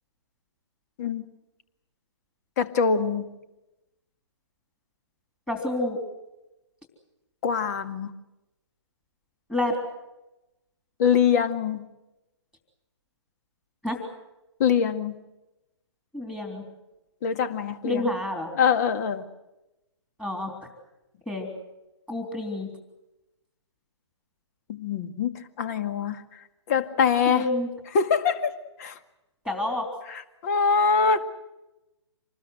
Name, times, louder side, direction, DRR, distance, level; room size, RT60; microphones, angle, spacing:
voice 1, 2.6-3.3 7.4-8.1 11.0-11.8 14.6-15.1 17.2-18.1 18.6-19.2 24.7-26.2 26.7-27.5 27.9-28.5 28.8-29.0 30.1-31.2, left 6 dB, 35° left, 10 dB, 2.1 m, -24 dB
voice 2, 5.5-6.0 9.5-9.8 13.8-14.0 16.1-16.6 17.8-18.5 20.2-20.5 21.3-21.5 22.1-22.7 27.3-27.7 29.5-29.9, left 1 dB, 5° left, 4 dB, 3.4 m, -28 dB
26.5 x 20.5 x 7.9 m, 0.95 s
figure-of-eight pair, 145°, 15 cm